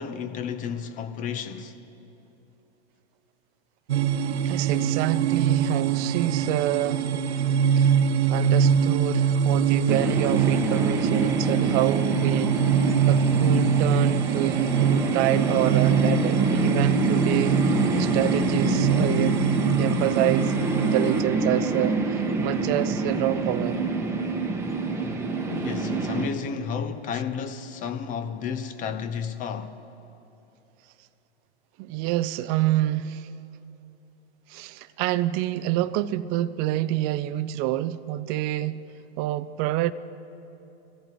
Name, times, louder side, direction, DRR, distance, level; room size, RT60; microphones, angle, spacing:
voice 1, 0.0-1.8 25.5-29.8, left 7 dB, 25° left, 0.7 m, -32 dB
sound 1, 3.9-21.2, right 7 dB, 85° right, 0.7 m, -24 dB
voice 2, 4.4-7.4 7.8-7.9 8.3-12.5 12.8-17.6 17.9-19.4 19.8-23.8 31.8-33.3 34.5-38.8 39.2-39.9, right 14 dB, 30° right, 0.4 m, -27 dB
sound 2, 9.9-26.3, right 3 dB, 10° right, 1.1 m, -26 dB
22.5 x 14.0 x 3.0 m
hypercardioid pair, 120°, 32 cm